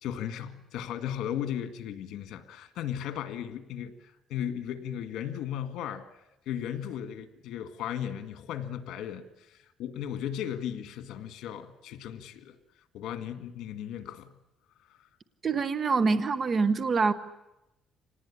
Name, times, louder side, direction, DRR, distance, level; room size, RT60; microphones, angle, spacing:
voice 1, 0.0-6.0 6.5-12.5 12.9-14.3, left 10 dB, 80° left, 9 dB, 1.9 m, -36 dB
voice 2, 15.4-17.1, right 4 dB, 35° right, 12 dB, 1.1 m, -25 dB
26.0 x 19.0 x 10.0 m, 0.95 s
cardioid pair, 135°, 0 cm